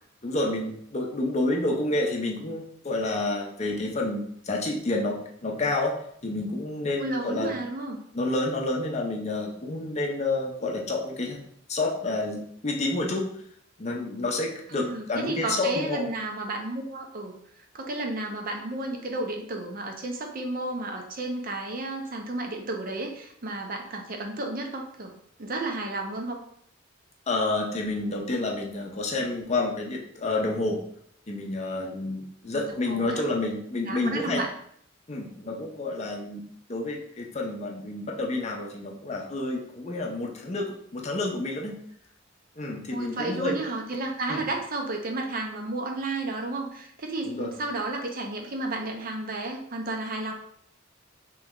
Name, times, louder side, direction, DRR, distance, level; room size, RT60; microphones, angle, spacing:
voice 1, 0.2-5.9 6.2-7.5 8.1-11.4 11.7-13.3 13.8-16.0 27.3-30.8 31.3-34.4 35.1-36.4 36.7-41.8 42.6-43.6 44.3-44.4 47.2-47.5, left 2 dB, 35° left, 0 dB, 0.6 m, -29 dB
voice 2, 7.0-8.0 14.7-25.1 25.4-26.4 32.5-33.3 33.9-34.5 42.9-50.3, right 2 dB, 45° right, 2 dB, 0.6 m, -32 dB
3.3 x 3.0 x 3.6 m, 0.66 s
head